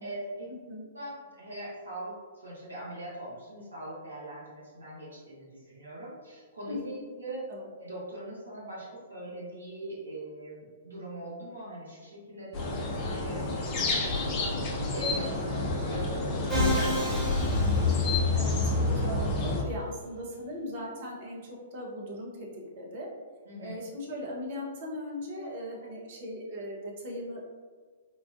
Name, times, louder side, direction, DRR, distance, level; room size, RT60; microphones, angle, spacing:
voice 1, 0.0-0.5 0.9-7.4 7.8-17.2 23.4-23.8, right 1 dB, 80° right, -7 dB, 1.2 m, -41 dB
voice 2, 6.7-7.0 7.5-7.7 15.5-15.8 16.3-16.5 18.3-21.4 21.7-23.1 23.6-27.4, equal, 50° right, -2 dB, 0.8 m, -39 dB
sound 1, 12.5-19.6, left 3 dB, 35° left, 0.6 m, -28 dB
Musical instrument, 16.5-18.6, left 1 dB, 5° right, 1.3 m, -31 dB
3.8 x 2.4 x 2.5 m, 1.5 s
figure-of-eight pair, 110°, 0 cm